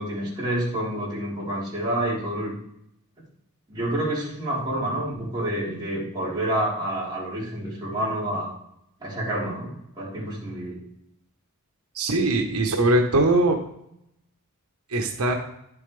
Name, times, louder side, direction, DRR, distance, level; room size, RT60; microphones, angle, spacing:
voice 1, 0.0-2.5 3.7-8.5 9.0-10.8, right 1 dB, 20° right, -8 dB, 4.1 m, -28 dB
voice 2, 11.9-13.6 14.9-15.3, right 2 dB, 85° right, 3 dB, 1.2 m, -21 dB
11.0 x 7.4 x 3.3 m, 0.77 s
head